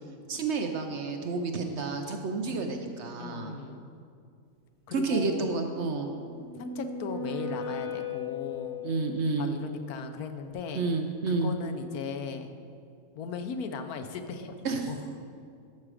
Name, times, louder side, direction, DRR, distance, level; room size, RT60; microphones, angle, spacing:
voice 1, 0.3-3.6 4.9-6.1 8.8-9.5 10.7-11.5 14.6-14.9, right 4 dB, 60° right, 4 dB, 0.8 m, -30 dB
voice 2, 2.4-2.8 3.2-3.9 4.9-5.5 6.5-8.8 9.4-10.9 11.3-12.5 13.1-15.0, left 5 dB, 80° left, 7 dB, 1.2 m, -38 dB
sound 1, 6.0-9.1, left 5 dB, 20° left, 2.6 m, -36 dB
12.5 x 6.1 x 4.9 m, 2.4 s
omnidirectional pair, 1.6 m